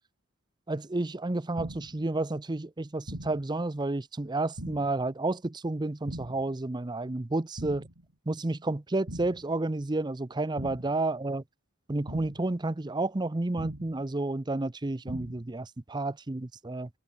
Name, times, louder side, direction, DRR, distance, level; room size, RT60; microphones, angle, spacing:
voice 1, 0.7-7.8 8.3-11.4 11.9-16.9, right 2 dB, 20° right, 0.6 m, -31 dB
sound 1, 1.6-2.0 3.1-3.5 4.6-5.0 6.1-6.5 7.6-8.0 9.1-9.5 10.6-11.0 12.1-12.5 13.6-14.0 15.1-15.5, right 1 dB, 90° right, 3.5 m, -41 dB
head